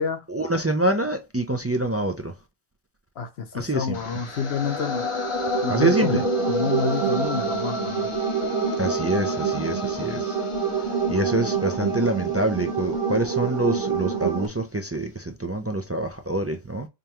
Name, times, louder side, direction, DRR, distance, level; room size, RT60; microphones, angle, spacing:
voice 1, 0.3-2.3 3.5-4.0 5.7-6.2 8.8-10.4 11.1-16.9, right 2 dB, 25° right, 0.3 m, -26 dB
voice 2, 3.2-5.1 5.6-8.1, left 6 dB, 80° left, 1.1 m, -28 dB
sound 1, 3.9-14.0, left 3 dB, 35° left, 0.7 m, -31 dB
sound 2, 5.0-14.5, right 8 dB, 70° right, 1.1 m, -27 dB
5.1 x 2.3 x 2.9 m
omnidirectional pair, 1.1 m